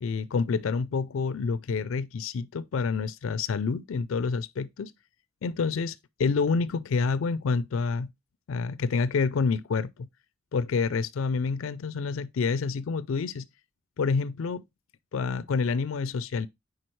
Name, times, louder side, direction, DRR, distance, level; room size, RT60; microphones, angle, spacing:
voice 1, 0.0-4.9 5.4-8.1 8.5-10.1 10.5-13.5 14.0-14.6 15.1-16.5, left 4 dB, 75° left, 0.4 m, -28 dB
7.6 x 4.8 x 3.0 m
head